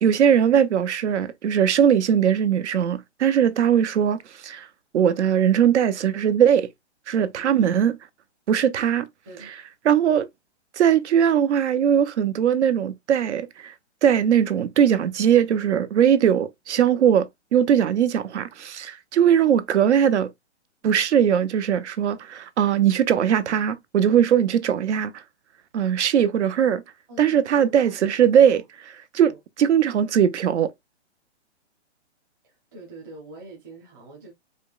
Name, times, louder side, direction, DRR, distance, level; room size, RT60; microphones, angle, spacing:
voice 1, 0.0-4.7 4.9-6.7 7.1-8.0 8.5-9.1 9.8-10.3 10.7-13.7 14.0-17.3 17.5-20.3 20.8-25.2 25.7-26.8 27.2-29.3 29.6-30.7, right 9 dB, 75° right, 0.6 m, -20 dB
voice 2, 7.4-7.8 9.3-9.5 16.2-16.5 16.9-17.1 27.1-27.9 29.2-29.4 32.4-34.3, right 2 dB, 20° right, 0.8 m, -45 dB
5.0 x 2.1 x 2.3 m
hypercardioid pair, 165°, 35 cm